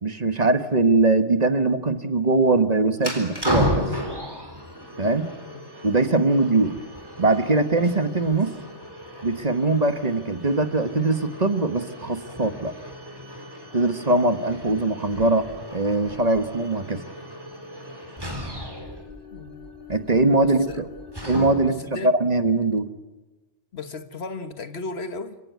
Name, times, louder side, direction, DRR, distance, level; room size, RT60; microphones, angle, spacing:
voice 1, 0.0-3.9 5.0-5.3 5.8-6.7 7.2-8.5 9.2-12.7 13.7-15.4 15.7-17.0 19.9-20.8 21.3-21.8 22.0-22.9, right 2 dB, 40° right, 1.4 m, -21 dB
sound 1, 3.0-21.9, equal, 20° right, 4.0 m, -34 dB
voice 2, 19.3-19.7 20.4-20.8 21.7-22.1 23.7-25.4, left 3 dB, 80° left, 1.7 m, -35 dB
29.0 x 17.5 x 9.4 m
omnidirectional pair, 1.1 m